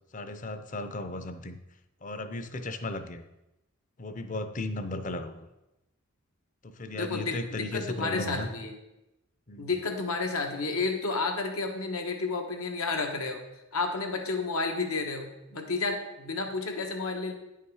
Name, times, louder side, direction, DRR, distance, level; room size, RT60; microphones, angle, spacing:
voice 1, 0.1-1.6 2.0-3.2 4.0-5.5 6.6-8.5 9.5-9.7, left 2 dB, 35° left, 10 dB, 0.6 m, -35 dB
voice 2, 6.9-8.8 9.6-13.4 13.7-17.3, left 3 dB, 85° left, 3 dB, 1.3 m, -31 dB
9.7 x 5.8 x 4.8 m, 0.94 s
head